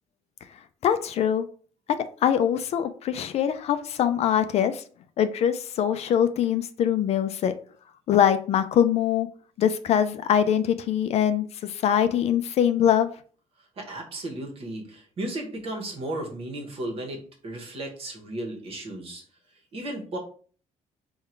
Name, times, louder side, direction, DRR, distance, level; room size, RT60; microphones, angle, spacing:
voice 1, 0.8-1.4 2.2-4.8 5.2-7.5 8.1-9.3 9.6-13.1, left 9 dB, 55° left, 11 dB, 0.4 m, -23 dB
voice 2, 13.8-19.2 19.7-20.2, right 1 dB, 45° right, 1 dB, 1.1 m, -34 dB
3.7 x 2.3 x 4.4 m, 0.43 s
cardioid pair, 120°, 13 cm